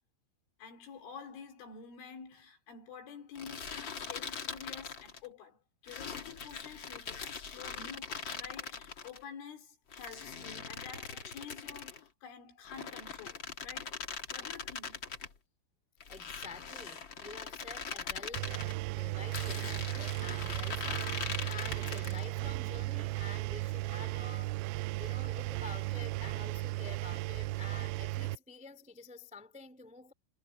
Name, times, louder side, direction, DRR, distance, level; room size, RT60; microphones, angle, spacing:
voice 1, 0.6-14.0 14.3-15.0, left 6 dB, 85° left, 6.6 m, -49 dB
sound 1, 3.4-5.3 5.9-9.2 9.9-12.0 12.6-15.3 16.0-18.7 19.3-22.3, left 6 dB, 50° left, 1.4 m, -41 dB
voice 2, 16.1-30.1, left 4 dB, 5° right, 1.2 m, -49 dB
Engine, 18.4-28.4, right 20 dB, 90° right, 3.0 m, -36 dB
omnidirectional pair, 5.4 m